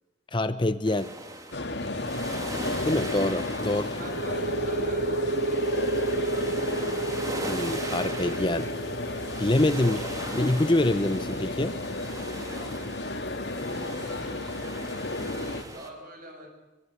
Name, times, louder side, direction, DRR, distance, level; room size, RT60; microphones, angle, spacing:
voice 1, 0.3-1.1 2.8-3.9 7.5-8.7 9.4-11.8, left 1 dB, 25° left, 12 dB, 0.8 m, -25 dB
sound 1, 0.8-15.9, right 2 dB, 20° right, 3.0 m, -41 dB
sound 2, 1.5-15.6, left 2 dB, 70° left, 2.3 m, -33 dB
voice 2, 3.6-6.6 12.5-16.5, right 1 dB, 45° right, 2 dB, 7.8 m, -47 dB
sound 3, 4.0-11.4, right 2 dB, 70° right, 0.9 m, -31 dB
24.0 x 23.5 x 9.6 m, 1.1 s
head